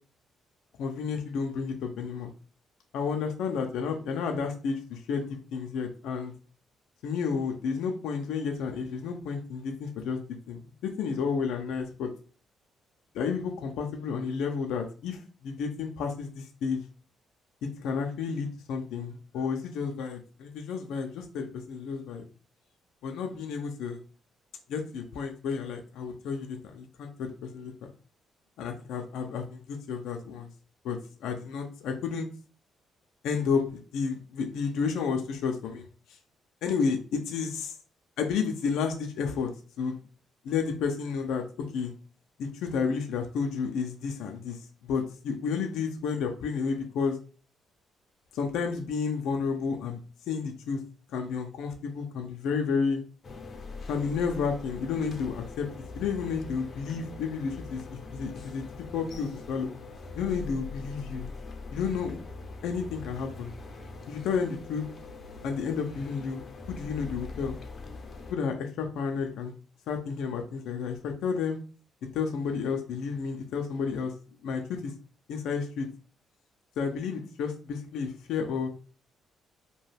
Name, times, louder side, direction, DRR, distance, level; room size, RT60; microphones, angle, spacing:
voice 1, 0.8-2.3 2.9-6.3 7.0-12.1 13.1-16.8 17.6-22.3 23.0-24.0 24.7-27.9 28.6-30.5 30.8-32.3 33.2-35.9 36.6-37.7 38.2-39.5 39.8-40.0 40.4-41.4 41.7-41.9 42.4-44.6 44.9-47.2 48.3-50.0 50.2-50.8 51.1-53.0 53.9-55.7 55.9-58.7 58.9-59.7 60.1-61.3 61.7-62.2 62.6-63.5 64.1-64.9 65.4-66.4 66.7-67.5 68.3-69.5 69.9-71.6 72.1-74.1 74.4-74.9 75.3-75.9 76.8-78.7, left 5 dB, 85° left, 3 dB, 0.4 m, -31 dB
sound 1, 53.2-68.3, left 3 dB, 40° left, 0.6 m, -42 dB
2.7 x 2.2 x 3.3 m, 0.37 s
cardioid pair, 90°, 0 cm